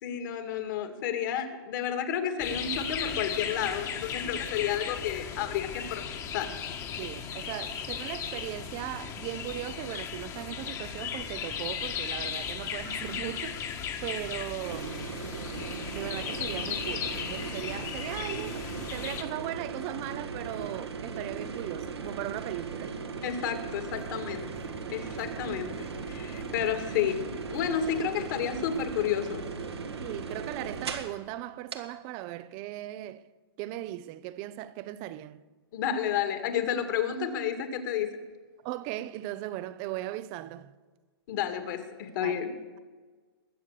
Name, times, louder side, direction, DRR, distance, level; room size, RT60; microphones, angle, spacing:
voice 1, 0.0-6.5 23.2-24.5 24.9-29.4 35.7-38.1 41.3-42.5, left 9 dB, 50° left, 2.2 m, -31 dB
sound 1, 2.4-19.2, left 7 dB, 25° left, 1.5 m, -36 dB
voice 2, 7.0-13.6 14.0-15.1 15.9-23.0 30.0-33.3 33.6-35.4 38.6-40.7 42.2-42.4, right 14 dB, 30° right, 0.7 m, -38 dB
sound 2, 14.6-31.2 31.7-31.8, right 5 dB, 85° right, 1.8 m, -38 dB
sound 3, 23.7-29.0, right 2 dB, 10° right, 1.1 m, -50 dB
21.0 x 7.3 x 6.7 m
hypercardioid pair, 130°, 13 cm